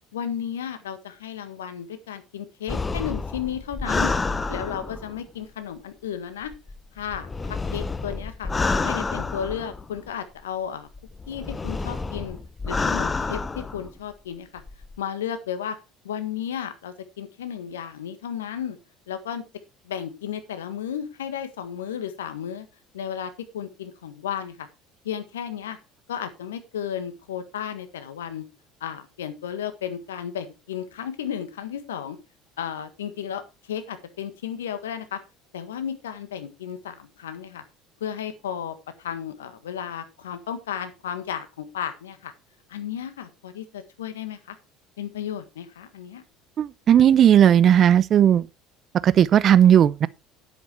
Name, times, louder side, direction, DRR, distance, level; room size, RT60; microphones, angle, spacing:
voice 1, 0.1-4.1 4.5-6.5 6.9-8.5 8.8-10.9 11.3-12.4 12.6-14.6 15.0-15.8 16.0-18.8 19.1-19.4 19.8-22.7 22.9-24.7 25.0-25.8 26.1-28.4 28.8-32.2 32.6-35.2 35.5-37.6 38.0-42.3 42.7-44.6 45.0-46.2, left 9 dB, 80° left, 1.5 m, -33 dB
sound 1, 2.7-5.2 6.4-10.1 10.9-13.9 14.6-14.9, left 3 dB, 25° left, 0.9 m, -29 dB
voice 2, 46.6-48.5 49.0-50.1, right 10 dB, 45° right, 0.6 m, -16 dB
10.0 x 8.1 x 4.4 m
hypercardioid pair, 65°, 0 cm